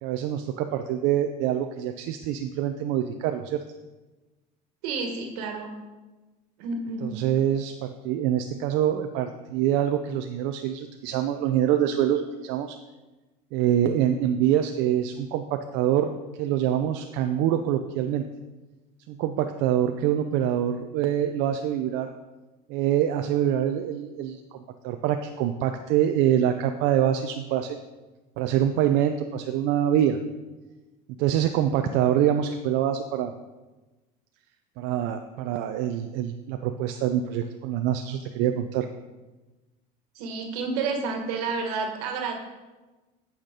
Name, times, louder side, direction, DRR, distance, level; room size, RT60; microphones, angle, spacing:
voice 1, 0.0-3.6 7.0-12.8 13.5-16.1 16.4-18.2 19.1-22.1 22.7-24.6 24.8-27.8 28.4-30.2 31.2-33.3 34.8-38.9, right 10 dB, 75° right, 6 dB, 0.6 m, -25 dB
voice 2, 4.8-5.7 6.6-7.1 40.1-42.3, right 4 dB, 90° right, 4 dB, 1.6 m, -30 dB
8.9 x 5.9 x 5.2 m, 1.2 s
supercardioid pair, 105°, 19 cm